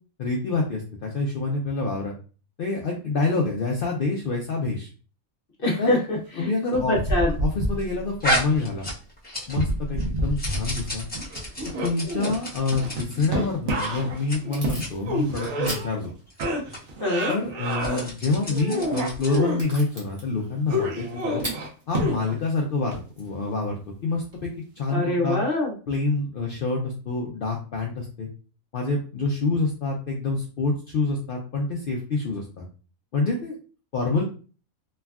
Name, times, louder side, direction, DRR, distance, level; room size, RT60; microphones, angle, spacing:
voice 1, 0.2-2.1 2.6-4.9 5.8-5.9 6.4-7.0 7.4-8.9 9.5-11.1 11.8-16.1 17.3-21.4 21.9-25.4 25.9-28.3 28.7-32.6 33.1-33.6 33.9-34.2, left 3 dB, 75° left, 0 dB, 0.5 m, -27 dB
voice 2, 5.6-7.3 17.0-17.3 24.9-25.7, left 1 dB, 50° left, -2 dB, 0.8 m, -25 dB
sound 1, 6.7-8.2 9.5-10.9 11.1-16.1 16.4-18.1 18.5-19.6 20.7-22.5 22.9-23.0, equal, 60° right, 1.0 m, -28 dB
sound 2, 8.2-9.7 10.0-13.3 13.7-13.9 14.2-14.4 14.7-14.9 15.3-15.7 16.3-16.4 16.7-16.8 17.6-19.5, equal, 10° left, 0.5 m, -32 dB
Packing tape duct tape / Tearing, 13.6-24.4, right 1 dB, 30° right, 0.9 m, -44 dB
3.3 x 2.2 x 2.3 m, 0.37 s
omnidirectional pair, 1.5 m